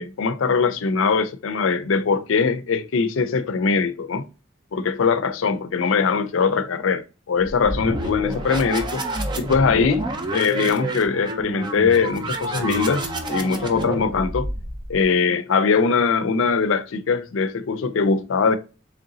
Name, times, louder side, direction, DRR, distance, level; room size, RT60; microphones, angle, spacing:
voice 1, 0.0-4.3 4.7-9.0 9.4-10.0 10.3-14.5 14.9-18.6, left 5 dB, 85° left, 0.4 m, -21 dB
sound 1, 7.4-15.0, right 2 dB, 25° right, 0.5 m, -29 dB
3.8 x 3.3 x 2.6 m
head